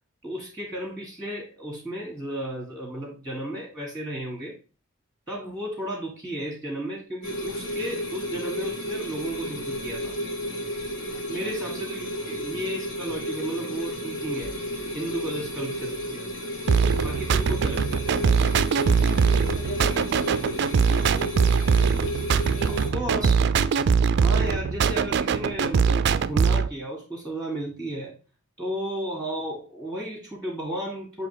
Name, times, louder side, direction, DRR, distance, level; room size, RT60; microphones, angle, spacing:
voice 1, 0.2-4.5 5.3-10.2 11.3-14.5 14.9-16.2 17.0-18.0 22.9-23.4 24.2-28.1 28.6-31.3, right 1 dB, 5° left, -2 dB, 1.6 m, -33 dB
sound 1, 7.2-22.9, equal, 65° left, 1.6 m, -32 dB
voice 2, 11.1-11.6 19.0-20.6 22.5-23.4, left 1 dB, 40° left, 3 dB, 1.1 m, -43 dB
sound 2, 16.7-26.7, right 6 dB, 55° right, 0.3 m, -22 dB
7.0 x 2.9 x 4.7 m, 0.34 s
head